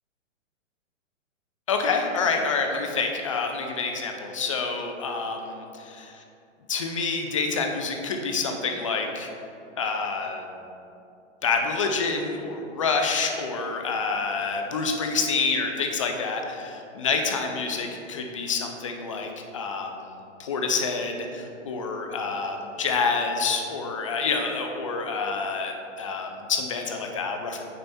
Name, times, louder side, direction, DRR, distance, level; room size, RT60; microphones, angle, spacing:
voice 1, 1.7-6.1 6.7-9.3 9.8-10.5 11.4-19.9 20.4-27.6, left 4 dB, 25° left, 3 dB, 0.4 m, -27 dB
9.0 x 3.3 x 4.1 m, 2.7 s
hypercardioid pair, 155°, 38 cm